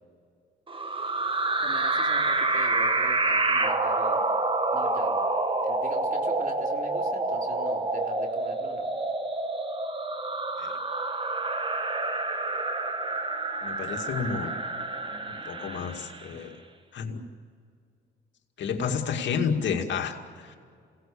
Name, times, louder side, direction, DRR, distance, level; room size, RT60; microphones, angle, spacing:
sound 1, 0.7-16.4, right 2 dB, 25° right, 1.8 m, -28 dB
voice 1, 1.6-4.2 4.7-5.2 5.6-8.9, right 2 dB, 45° right, 2 dB, 4.1 m, -43 dB
voice 2, 13.6-14.5 15.3-16.6 16.9-17.2 18.6-20.6, left 6 dB, 65° left, 4 dB, 2.3 m, -30 dB
28.0 x 18.0 x 8.7 m, 2.2 s
cardioid pair, 90°, 20 cm